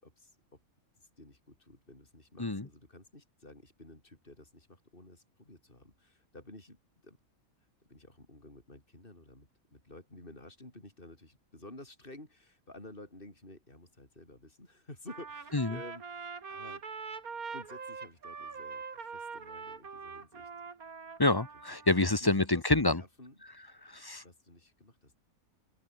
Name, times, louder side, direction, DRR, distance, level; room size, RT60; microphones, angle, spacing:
voice 1, 0.0-0.6 1.0-6.8 7.0-7.2 7.9-16.8 17.5-20.5 22.0-23.4 24.2-25.2, left 1 dB, 35° left, 6.5 m, -52 dB
Trumpet, 15.1-22.0, right 5 dB, 80° right, 2.7 m, -43 dB
voice 2, 21.2-23.0 23.8-24.2, left 2 dB, 20° left, 1.0 m, -27 dB
omnidirectional pair, 1.5 m